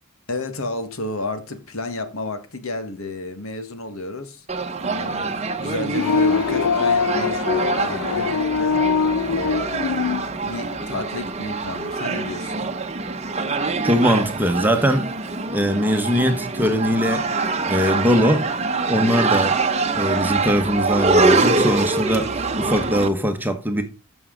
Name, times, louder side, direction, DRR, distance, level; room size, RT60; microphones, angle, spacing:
voice 1, 0.3-4.4 4.8-8.8 9.3-12.7, left 2 dB, 70° left, 1.6 m, -31 dB
sound 1, 4.5-23.1, right 3 dB, 30° right, 0.9 m, -24 dB
sound 2, 5.9-10.2, left 5 dB, 90° left, 0.4 m, -22 dB
voice 2, 13.8-15.1 15.5-17.3 17.6-18.5 18.9-19.6 19.9-23.8, equal, 10° right, 1.1 m, -21 dB
13.5 x 6.2 x 3.8 m
head